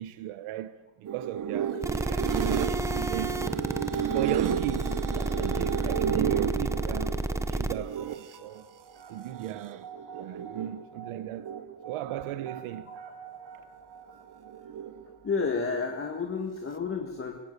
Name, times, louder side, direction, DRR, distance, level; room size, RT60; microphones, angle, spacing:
voice 1, 0.0-2.8 3.1-3.4 3.9-8.7 9.1-11.5 11.8-12.9, right 12 dB, 75° right, 1.0 m, -36 dB
sound 1, 1.1-8.4 9.3-10.8 11.2-11.9 14.3-15.1, right 9 dB, 40° right, 1.0 m, -32 dB
sound 2, 1.8-7.7, right 1 dB, 5° right, 0.7 m, -30 dB
sound 3, 6.7-15.6, right 7 dB, 55° right, 3.6 m, -49 dB
voice 2, 15.2-17.4, left 4 dB, 25° left, 1.7 m, -30 dB
23.0 x 17.5 x 8.2 m
cardioid pair, 160°, 50 cm